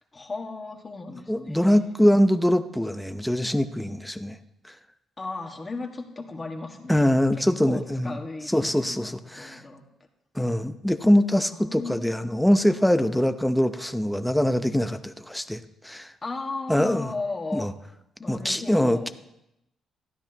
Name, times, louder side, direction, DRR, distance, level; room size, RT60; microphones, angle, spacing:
voice 1, 0.1-2.0 5.2-7.1 7.4-9.8 11.5-12.1 16.2-17.6 18.2-19.1, left 3 dB, 30° left, 2 dB, 1.7 m, -36 dB
voice 2, 1.3-4.4 6.9-8.2 8.5-9.6 10.4-16.1 16.7-17.1 17.5-17.7 18.3-19.1, equal, 5° left, 9 dB, 0.7 m, -23 dB
13.5 x 12.0 x 3.0 m, 0.85 s
cardioid pair, 90°, 0 cm